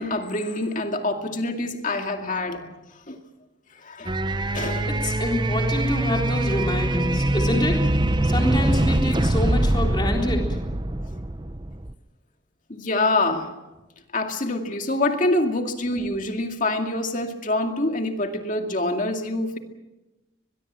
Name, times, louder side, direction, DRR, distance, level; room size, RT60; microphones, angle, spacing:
voice 1, 0.0-2.7 3.1-3.2 3.8-4.1 4.5-4.9 12.7-13.6 14.1-19.6, left 2 dB, 40° left, 5 dB, 2.2 m, -26 dB
sound 1, 4.1-11.9, right 1 dB, 25° right, 0.8 m, -23 dB
voice 2, 4.9-7.8 8.2-10.6, left 1 dB, 25° left, 1 dB, 3.9 m, -27 dB
22.5 x 22.0 x 7.5 m, 1.1 s
head